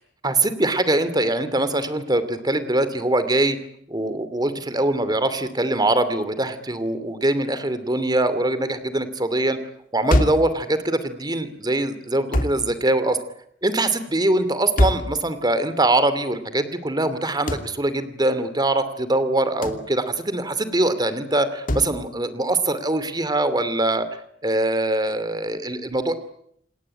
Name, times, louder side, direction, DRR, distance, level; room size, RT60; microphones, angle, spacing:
voice 1, 0.2-3.6 3.9-9.6 9.9-13.2 13.6-24.1 24.4-26.1, right 2 dB, 20° right, 12 dB, 2.7 m, -23 dB
sound 1, 10.1-10.5 12.3-12.6 14.8-15.1 17.5-17.7 19.6-19.9 21.7-21.9, left 1 dB, 45° left, 2.7 m, -22 dB
28.5 x 19.0 x 9.8 m, 0.71 s
head